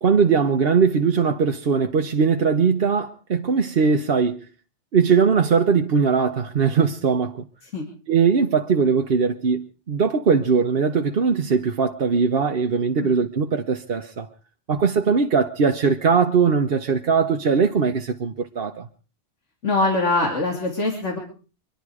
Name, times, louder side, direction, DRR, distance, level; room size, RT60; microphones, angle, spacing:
voice 1, 0.0-4.5 4.9-7.5 8.1-14.3 14.7-18.9, right 5 dB, 55° right, 1.1 m, -20 dB
voice 2, 19.6-21.2, left 2 dB, 90° left, 3.2 m, -22 dB
24.5 x 11.5 x 4.8 m
omnidirectional pair, 1.2 m